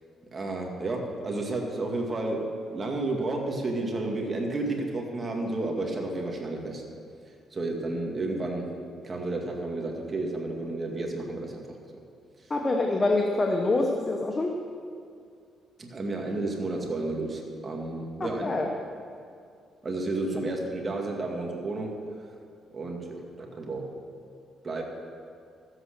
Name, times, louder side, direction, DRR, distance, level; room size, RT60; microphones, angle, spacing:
voice 1, 0.3-6.8 7.5-8.7 9.0-11.8 15.8-18.5 19.8-22.1 22.7-24.0 24.6-24.8, right 2 dB, 30° right, 0 dB, 2.2 m, -31 dB
voice 2, 12.5-14.5 18.2-18.7, left 2 dB, 30° left, 2 dB, 1.0 m, -25 dB
13.5 x 8.3 x 6.7 m, 2.4 s
cardioid pair, 90°, 0 cm